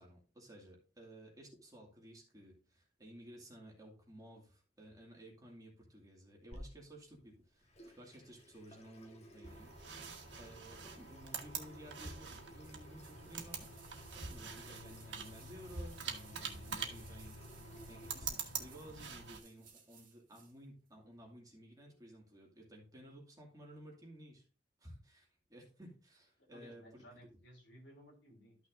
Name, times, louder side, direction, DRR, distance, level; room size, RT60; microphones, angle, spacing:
voice 1, 0.0-9.7 10.2-13.7 14.1-17.6 17.9-24.4 24.8-27.2, right 1 dB, 20° right, -1 dB, 2.3 m, -55 dB
Water tap faucet / Sink (filling or washing), 6.5-18.3, equal, 35° left, 1.4 m, -57 dB
sound 1, 9.4-19.4, right 5 dB, 75° right, 1.5 m, -45 dB
sound 2, 12.6-20.6 20.9-21.0, right 7 dB, 45° right, 2.3 m, -62 dB
voice 2, 26.5-28.6, equal, 70° left, 1 dB, 3.1 m, -58 dB
13.0 x 6.1 x 2.6 m, 0.37 s
head